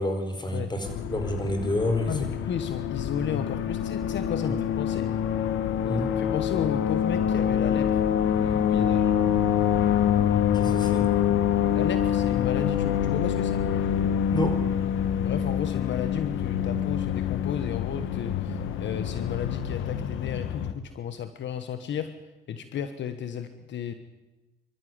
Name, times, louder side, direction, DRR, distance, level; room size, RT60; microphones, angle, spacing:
voice 1, 0.0-2.3 4.4-4.6 5.8-6.1 10.5-11.1 14.3-14.6, left 1 dB, 20° left, 6 dB, 4.9 m, -29 dB
sound 1, 0.8-20.7, left 9 dB, 85° left, 1.3 m, -26 dB
voice 2, 2.1-5.1 6.1-8.0 8.3-9.1 11.7-13.6 15.2-22.1 22.5-23.9, left 8 dB, 65° left, 10 dB, 1.3 m, -33 dB
24.5 x 13.5 x 9.6 m, 1.1 s
cardioid pair, 90°, 20 cm